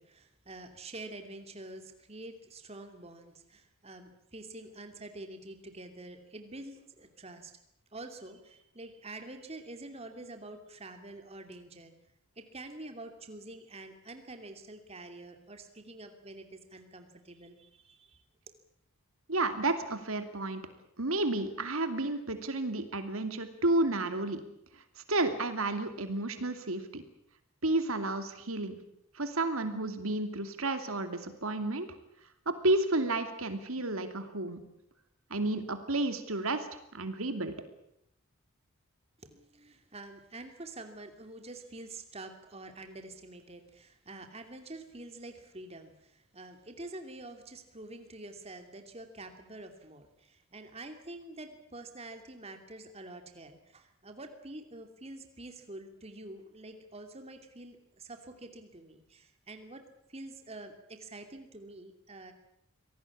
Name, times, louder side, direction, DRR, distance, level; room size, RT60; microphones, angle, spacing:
voice 1, 0.0-7.5 7.9-11.9 12.4-18.2 18.5-18.6 39.2-59.8 60.1-62.3, right 2 dB, 30° right, 6 dB, 2.7 m, -47 dB
voice 2, 19.3-20.6 21.0-24.4 24.7-24.8 25.1-27.0 27.6-28.8 29.1-31.9 32.5-34.6 35.3-37.5, right 2 dB, 80° right, 8 dB, 2.7 m, -31 dB
25.5 x 18.0 x 8.6 m, 0.78 s
head